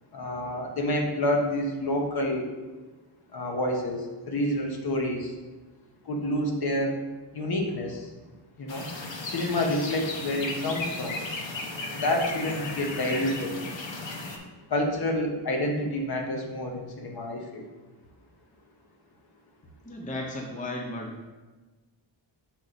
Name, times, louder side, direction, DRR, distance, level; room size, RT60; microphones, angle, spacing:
voice 1, 0.1-2.5 3.3-5.3 6.0-7.0 7.3-8.1 8.6-8.9 9.3-11.2 11.9-13.5 14.7-17.6, left 1 dB, 55° left, 1 dB, 1.1 m, -28 dB
sound 1, 8.7-14.4, left 3 dB, 80° left, 1.0 m, -35 dB
voice 2, 19.8-21.2, left 1 dB, 15° left, 1 dB, 0.6 m, -35 dB
6.3 x 4.6 x 4.0 m, 1.2 s
wide cardioid pair, 160°, 45 cm